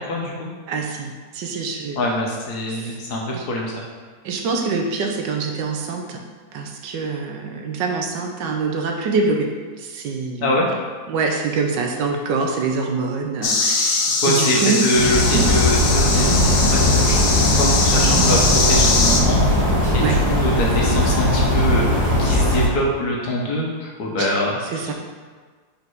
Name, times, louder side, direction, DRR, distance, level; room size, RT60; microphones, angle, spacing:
voice 1, 0.0-0.5 1.9-3.7 10.4-10.7 14.2-16.3 16.6-19.6 19.9-24.6, left 1 dB, 60° left, -2 dB, 1.4 m, -24 dB
voice 2, 0.7-2.0 3.3-3.4 4.2-6.2 6.5-9.5 9.8-10.5 11.1-14.8 15.3-15.5 20.0-20.2 24.2-24.4 24.7-24.9, right 4 dB, 75° right, 2 dB, 1.3 m, -25 dB
sound 1, 13.4-19.2, left 4 dB, 90° left, 0.6 m, -21 dB
sound 2, 14.9-22.7, left 1 dB, 40° right, 2.0 m, -18 dB
5.1 x 4.1 x 4.6 m, 1.5 s
omnidirectional pair, 2.0 m